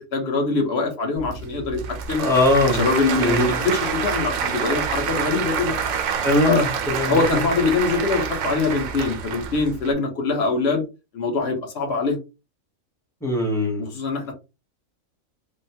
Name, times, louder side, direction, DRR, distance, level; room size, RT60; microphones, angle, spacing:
voice 1, 0.0-1.8 2.1-2.2 2.7-5.7 6.5-6.7 7.0-10.8 11.1-12.2 13.8-14.3, left 4 dB, 55° left, 1.1 m, -23 dB
Applause / Crowd, 1.2-9.9, right 7 dB, 80° right, 1.0 m, -27 dB
voice 2, 2.2-2.8 3.1-3.5 6.2-7.4 13.2-13.9, left 1 dB, 5° left, 0.7 m, -21 dB
3.5 x 2.1 x 2.7 m
omnidirectional pair, 1.4 m